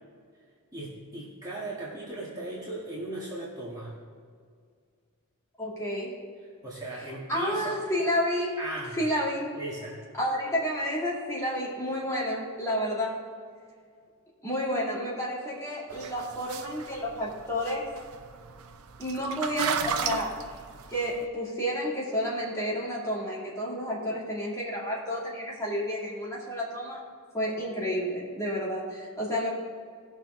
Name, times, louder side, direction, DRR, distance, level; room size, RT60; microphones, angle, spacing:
voice 1, 0.7-3.9 6.6-7.8 8.6-9.0 9.5-10.0, right 1 dB, 15° right, -7 dB, 1.7 m, -37 dB
voice 2, 5.6-6.2 7.3-8.6 9.0-9.5 10.2-13.2 14.4-17.9 19.0-20.5 20.9-27.0 27.3-29.5, equal, 15° left, -6 dB, 2.5 m, -30 dB
sound 1, 15.9-21.2, right 7 dB, 70° right, 0.6 m, -35 dB
17.5 x 6.2 x 3.8 m, 2.1 s
head